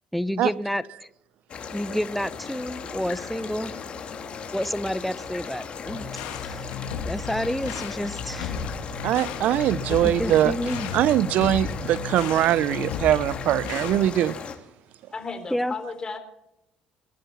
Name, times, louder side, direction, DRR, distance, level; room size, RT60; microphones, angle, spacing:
voice 1, 0.1-1.1 1.7-3.7 4.5-6.8 7.0-8.6 10.0-10.9 15.5-15.7, equal, ahead, 0.9 m, -29 dB
sound 1, 1.5-14.5, left 6 dB, 45° left, 2.9 m, -37 dB
sound 2, 5.9-14.0, left 6 dB, 85° left, 2.4 m, -34 dB
voice 2, 9.0-10.5 10.9-14.4, right 12 dB, 65° right, 0.6 m, -22 dB
voice 3, 10.1-10.6 15.1-16.2, left 4 dB, 30° left, 3.8 m, -35 dB
22.0 x 10.0 x 5.9 m
supercardioid pair, 80°, 3 cm